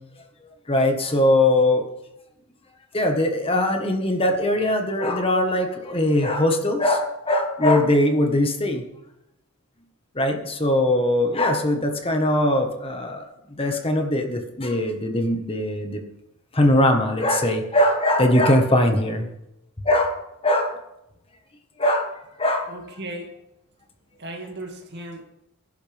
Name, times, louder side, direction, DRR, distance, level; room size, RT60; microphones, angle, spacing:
voice 1, 0.7-1.8 2.9-8.8 10.1-13.2 13.5-16.0 16.5-19.3 19.8-20.8 21.8-22.7, left 1 dB, 25° left, 1.5 m, -21 dB
voice 2, 22.7-23.4 24.2-25.2, right 1 dB, 50° right, 2.3 m, -36 dB
21.5 x 11.5 x 3.6 m
head